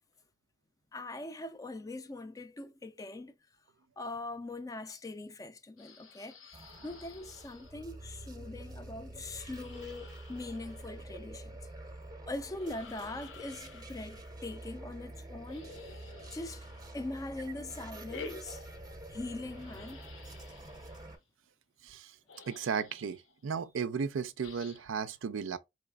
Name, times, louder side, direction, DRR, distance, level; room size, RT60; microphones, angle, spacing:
voice 1, 0.9-3.3 4.0-11.5 12.3-15.7 16.3-16.7 16.9-18.6 19.1-20.0, left 2 dB, 20° left, 0.3 m, -42 dB
sound 1, 5.8-7.7 9.3-11.1 12.5-14.3 15.5-17.1 18.0-19.2 19.5-21.1 22.0-22.1 22.3-23.3 24.4-25.0, left 4 dB, 90° left, 0.8 m, -52 dB
sound 2, 6.5-21.2, right 1 dB, 20° right, 0.6 m, -47 dB
voice 2, 21.8-22.1 22.5-25.6, right 6 dB, 85° right, 0.5 m, -35 dB
4.0 x 3.2 x 2.2 m
head